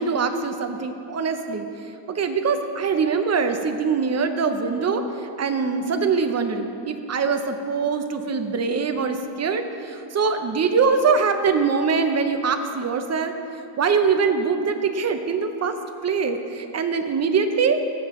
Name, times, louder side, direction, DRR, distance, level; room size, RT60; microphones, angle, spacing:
voice 1, 0.0-1.7 2.1-13.4 13.8-15.7 16.0-17.8, right 5 dB, 35° right, 7 dB, 0.6 m, -23 dB
15.0 x 7.5 x 3.1 m, 2.6 s
wide cardioid pair, 140°, 45 cm